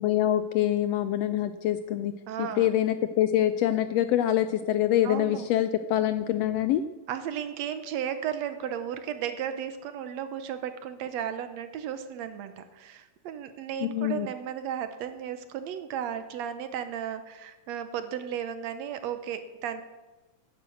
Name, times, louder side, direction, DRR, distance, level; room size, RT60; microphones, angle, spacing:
voice 1, 0.0-2.1 2.4-6.8 13.8-14.3, left 12 dB, 80° left, 12 dB, 1.5 m, -25 dB
voice 2, 2.3-2.7 5.0-5.5 7.1-19.8, right 9 dB, 75° right, 10 dB, 2.0 m, -34 dB
10.0 x 10.0 x 7.8 m, 1.2 s
omnidirectional pair, 3.3 m